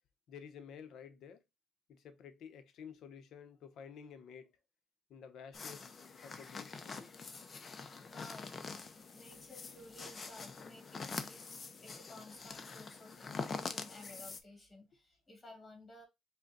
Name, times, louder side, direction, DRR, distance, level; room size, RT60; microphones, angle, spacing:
voice 1, 0.3-1.4 1.9-4.5 5.1-7.0, left 7 dB, 65° left, 0.7 m, -52 dB
sound 1, 5.5-14.4, left 4 dB, 30° left, 0.5 m, -45 dB
voice 2, 8.1-16.0, left 2 dB, 15° left, 1.4 m, -55 dB
5.1 x 2.2 x 3.9 m
cardioid pair, 150°, 0 cm